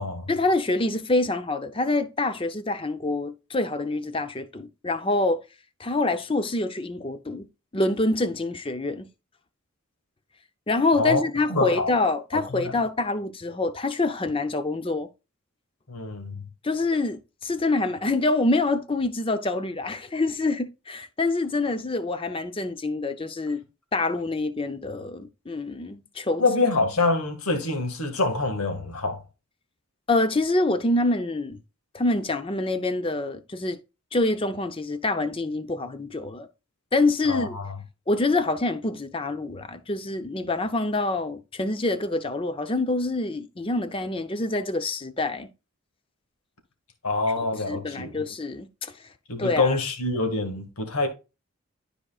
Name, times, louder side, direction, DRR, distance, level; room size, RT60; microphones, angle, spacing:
voice 1, 0.3-5.4 5.8-7.5 7.7-9.1 10.7-15.1 16.6-23.6 23.9-26.4 30.1-31.6 31.9-33.8 34.1-36.5 36.9-37.6 38.1-45.5 47.5-49.1 49.4-49.8, left 2 dB, 25° left, 0.6 m, -26 dB
voice 2, 11.5-11.9 12.3-12.7 15.9-16.4 26.4-29.2 37.3-37.7 47.0-48.2 49.3-51.1, left 3 dB, 90° left, 1.9 m, -26 dB
12.5 x 4.9 x 2.4 m
head